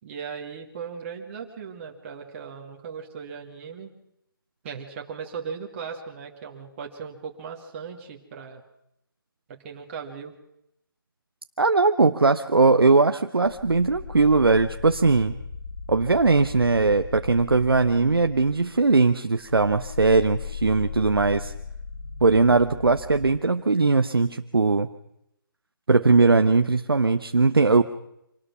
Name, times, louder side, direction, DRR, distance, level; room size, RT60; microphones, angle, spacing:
voice 1, 0.0-3.9 4.6-8.6 9.5-10.4, right 6 dB, 35° right, 1 dB, 2.3 m, -38 dB
voice 2, 11.6-15.3 15.9-21.5 22.2-24.9 25.9-27.8, right 3 dB, 80° right, 8 dB, 0.9 m, -20 dB
sound 1, 13.5-19.0 19.4-23.4, left 5 dB, 45° left, 1.5 m, -38 dB
25.5 x 19.0 x 6.1 m, 0.82 s
figure-of-eight pair, 145°, 12 cm